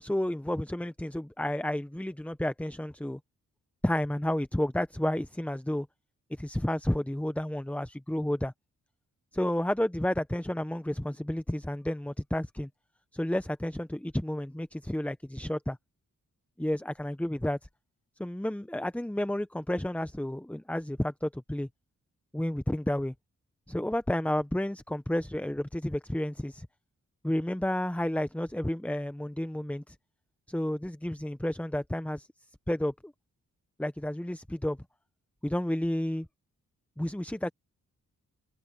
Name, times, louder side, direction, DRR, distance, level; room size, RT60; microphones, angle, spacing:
voice 1, 0.0-3.2 3.8-5.9 6.4-8.5 9.3-12.7 13.1-15.8 16.6-17.6 18.2-21.7 22.3-23.1 23.7-26.7 27.2-29.9 30.5-32.3 32.7-32.9 33.8-34.8 35.4-36.3 37.0-37.5, left 1 dB, 5° left, 1.0 m, -31 dB
cardioid pair, 50°, 34 cm